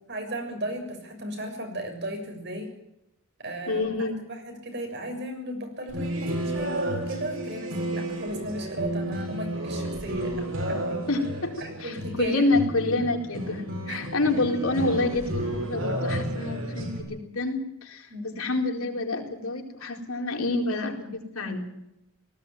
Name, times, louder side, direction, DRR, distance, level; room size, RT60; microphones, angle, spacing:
voice 1, 0.1-2.7 3.4-3.9 4.3-10.3 10.7-11.1 11.6-12.4 13.9-14.1 18.1-18.4, right 1 dB, 55° right, 4 dB, 6.8 m, -35 dB
voice 2, 3.7-4.2 11.1-11.5 11.8-21.7, left 2 dB, 90° left, 2 dB, 4.4 m, -28 dB
sound 1, 5.9-17.0, right 1 dB, 75° right, 7.0 m, -32 dB
19.0 x 16.5 x 9.2 m, 0.84 s
head